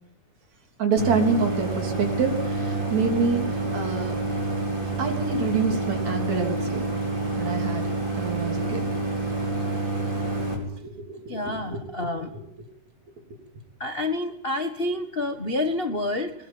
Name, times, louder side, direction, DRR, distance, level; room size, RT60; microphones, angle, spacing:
voice 1, 0.8-4.2 5.0-6.9 7.4-7.9 8.1-8.8 10.8-11.4 11.7-12.1, right 4 dB, 60° right, 4 dB, 4.6 m, -27 dB
Idling, 1.0-10.5, right 2 dB, 35° right, 6.3 m, -28 dB
voice 2, 11.3-12.3 13.8-16.3, left 2 dB, 50° left, 5 dB, 0.7 m, -28 dB
20.5 x 20.5 x 9.1 m, 0.76 s
omnidirectional pair, 3.7 m